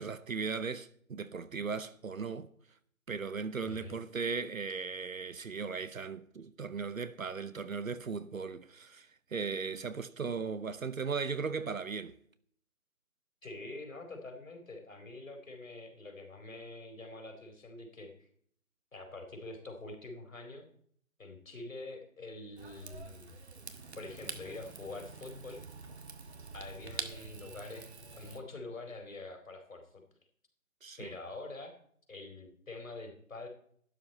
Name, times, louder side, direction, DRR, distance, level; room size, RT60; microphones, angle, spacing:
voice 1, 0.0-2.5 3.1-12.1 30.8-31.2, right 5 dB, 65° right, 0.9 m, -37 dB
voice 2, 3.7-4.0 13.4-18.3 18.9-20.7 21.2-23.3 23.9-25.6 26.5-30.0 31.0-31.7 32.1-33.5, left 2 dB, 65° left, 4.4 m, -46 dB
Rain / Fire, 22.6-28.4, right 4 dB, 50° right, 1.4 m, -46 dB
12.0 x 11.5 x 4.3 m
figure-of-eight pair, 165°, 43 cm